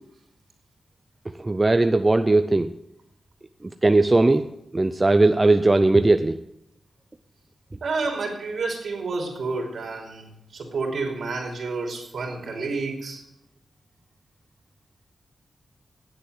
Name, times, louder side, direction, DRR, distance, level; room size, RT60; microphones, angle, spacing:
voice 1, 1.4-2.7 3.8-4.5 4.7-6.4, right 2 dB, 20° right, 9 dB, 0.5 m, -18 dB
voice 2, 7.8-13.2, right 3 dB, 65° right, 1 dB, 3.0 m, -30 dB
9.4 x 7.9 x 9.3 m, 0.83 s
wide cardioid pair, 100°, 0 cm